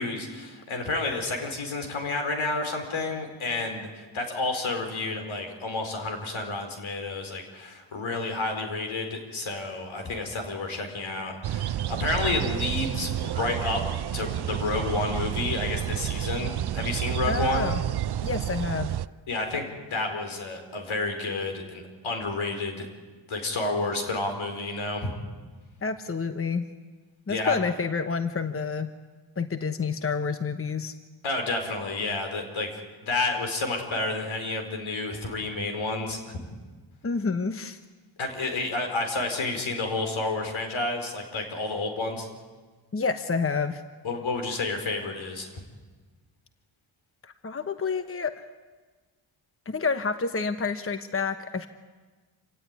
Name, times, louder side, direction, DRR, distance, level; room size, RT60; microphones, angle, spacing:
voice 1, 0.0-13.8 14.1-17.7 19.3-22.9 23.3-25.2 27.3-27.6 31.2-32.7 33.0-36.4 38.2-42.3 44.0-45.6, left 3 dB, 75° left, 5 dB, 4.6 m, -30 dB
sound 1, 11.4-19.1, right 12 dB, 55° right, 0.6 m, -30 dB
voice 2, 17.3-17.8 18.2-19.0 25.8-26.6 27.3-28.9 29.4-30.9 37.0-37.8 42.9-43.8 47.2-48.4 49.6-51.7, left 5 dB, 25° left, 9 dB, 1.2 m, -29 dB
27.0 x 16.5 x 9.7 m, 1.4 s
cardioid pair, 65°, 48 cm